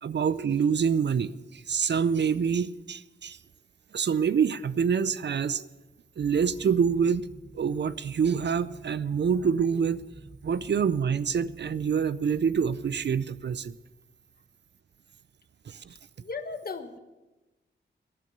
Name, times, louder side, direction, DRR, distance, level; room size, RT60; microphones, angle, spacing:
voice 1, 0.0-3.4 3.9-5.7 6.2-7.3 7.5-10.0 10.4-13.7 15.7-15.9, right 6 dB, 55° right, 15 dB, 0.5 m, -26 dB
sound 1, 6.2-13.6, right 3 dB, 35° right, 1.0 m, -48 dB
voice 2, 16.2-17.0, left 4 dB, 45° left, 8 dB, 1.3 m, -36 dB
12.0 x 10.5 x 6.8 m, 1.1 s
cardioid pair, 60°, 21 cm